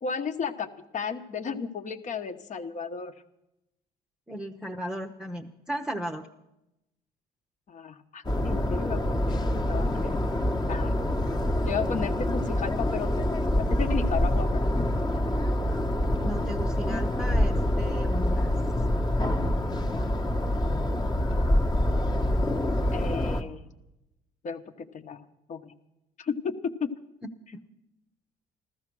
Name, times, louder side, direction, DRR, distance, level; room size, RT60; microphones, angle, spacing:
voice 1, 0.0-3.1 7.7-10.2 10.7-11.0 11.7-14.8 22.9-23.7 24.4-25.2 25.5-25.7 26.2-26.5 26.8-26.9, left 6 dB, 45° left, 8 dB, 1.3 m, -34 dB
voice 2, 4.3-6.3 16.2-18.5 27.5-27.6, equal, 5° right, 3 dB, 0.8 m, -35 dB
sound 1, 8.2-23.4, left 1 dB, 25° left, 1.2 m, -26 dB
14.5 x 14.0 x 6.2 m, 0.88 s
cardioid pair, 110°, 17 cm